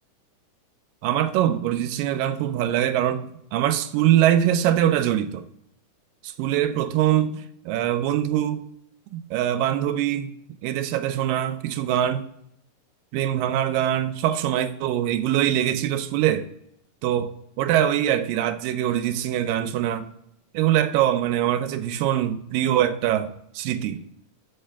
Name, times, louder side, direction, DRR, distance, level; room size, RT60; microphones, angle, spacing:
voice 1, 1.0-5.5 6.2-8.7 9.1-10.3 10.6-12.3 13.1-16.5 17.0-20.1 20.5-24.0, right 11 dB, 85° right, 2.2 m, -23 dB
6.5 x 5.2 x 3.3 m
omnidirectional pair, 4.0 m